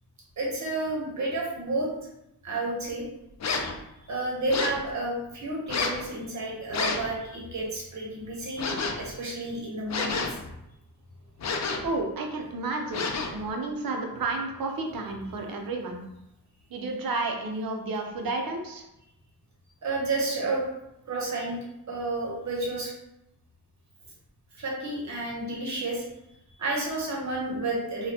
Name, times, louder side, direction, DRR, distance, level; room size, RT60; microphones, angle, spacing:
voice 1, 0.4-1.9 2.4-3.1 4.1-10.2 19.8-20.6 21.1-21.6 21.9-22.9 24.6-26.0 26.6-28.1, right 2 dB, 45° right, -3 dB, 1.0 m, -31 dB
sound 1, 3.4-3.8 4.5-4.9 5.7-6.0 6.7-7.1 8.6-9.1 9.9-10.5 11.4-12.0 12.9-13.5, left 4 dB, 45° left, 0.4 m, -29 dB
voice 2, 11.8-13.1 13.3-16.0 16.7-18.8, right 3 dB, 65° right, 3 dB, 0.6 m, -31 dB
4.1 x 2.3 x 2.8 m, 0.86 s
wide cardioid pair, 160°, 38 cm